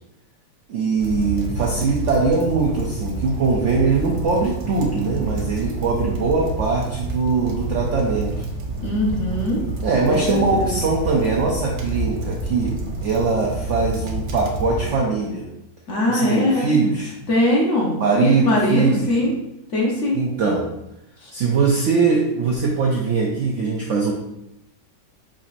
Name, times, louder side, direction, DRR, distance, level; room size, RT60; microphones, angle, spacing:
voice 1, 0.7-8.4 9.8-15.5 16.1-17.1 18.0-19.2 20.1-20.7 21.3-24.1, right 4 dB, 70° right, -1 dB, 0.7 m, -21 dB
sound 1, 1.0-14.9, right 2 dB, 85° right, 1.4 m, -28 dB
voice 2, 8.8-9.6 10.0-10.7 15.9-16.7 17.3-19.3 19.7-20.2 21.2-21.3, left 1 dB, 55° left, -3 dB, 1.1 m, -21 dB
4.9 x 4.2 x 2.5 m, 0.86 s
omnidirectional pair, 1.9 m